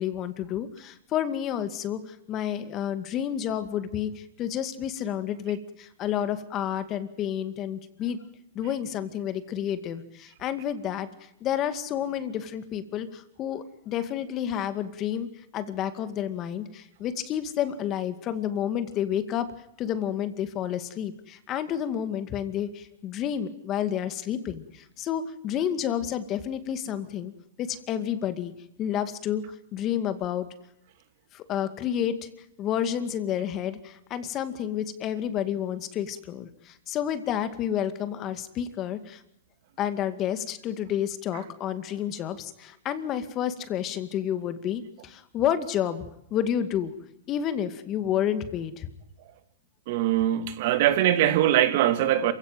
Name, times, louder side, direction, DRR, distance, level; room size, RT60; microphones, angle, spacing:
voice 1, 0.0-8.2 8.5-11.1 11.4-15.3 15.5-19.5 19.8-27.3 27.6-28.5 28.8-29.4 29.7-30.5 31.3-32.3 32.6-39.2 39.8-46.9 47.3-48.9, left 10 dB, 35° left, 2.2 m, -30 dB
voice 2, 49.9-52.3, right 12 dB, 55° right, 2.6 m, -22 dB
27.5 x 16.5 x 9.3 m
hypercardioid pair, 125°, 0 cm